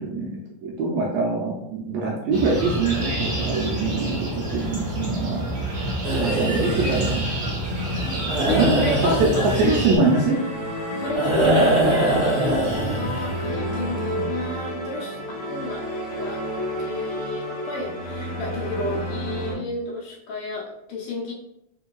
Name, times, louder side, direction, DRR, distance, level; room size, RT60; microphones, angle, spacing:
voice 1, 0.0-5.5 6.1-7.3 8.5-10.4, right 3 dB, 80° right, -2 dB, 1.6 m, -24 dB
sound 1, 2.3-10.0, right 1 dB, 45° right, 1.1 m, -28 dB
sound 2, 6.0-14.2, right 1 dB, 65° right, 0.6 m, -24 dB
voice 2, 8.5-9.8 10.9-15.8 16.1-16.5 16.8-21.3, left 3 dB, 75° left, -3 dB, 1.7 m, -31 dB
sound 3, 10.0-19.5, equal, 50° left, 1.2 m, -31 dB
4.5 x 2.6 x 2.3 m, 0.81 s
omnidirectional pair, 3.5 m